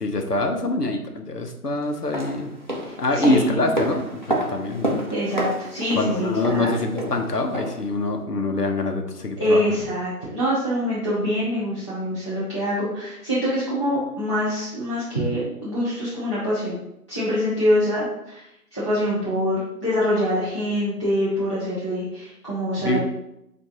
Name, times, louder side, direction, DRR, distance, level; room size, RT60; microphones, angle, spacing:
voice 1, 0.0-2.5 3.0-5.0 6.0-9.6 22.8-23.0, left 2 dB, 85° left, 4 dB, 0.9 m, -24 dB
sound 1, 1.9-7.9 8.2-8.3, right 1 dB, 30° right, 0.5 m, -30 dB
voice 2, 2.9-3.7 5.1-6.7 9.4-16.8 17.1-18.4 18.7-23.0, equal, 20° left, -11 dB, 0.7 m, -25 dB
6.9 x 2.6 x 2.9 m, 0.84 s
figure-of-eight pair, 150°, 46 cm